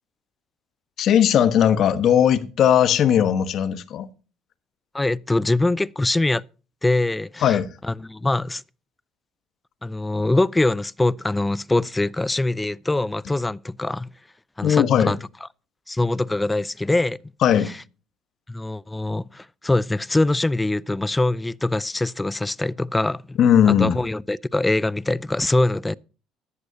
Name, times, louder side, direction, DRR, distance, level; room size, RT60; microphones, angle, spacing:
voice 1, 1.0-4.1 7.4-7.7 14.6-15.1 17.4-17.7 23.4-24.0, left 9 dB, 60° left, 1.2 m, -18 dB
voice 2, 4.9-6.4 6.8-7.6 7.9-8.6 9.8-14.1 14.6-15.2 15.9-17.2 17.7-17.8 18.5-23.2 23.7-26.0, left 2 dB, 10° left, 0.5 m, -23 dB
15.0 x 11.0 x 2.8 m
supercardioid pair, 80°, 0 cm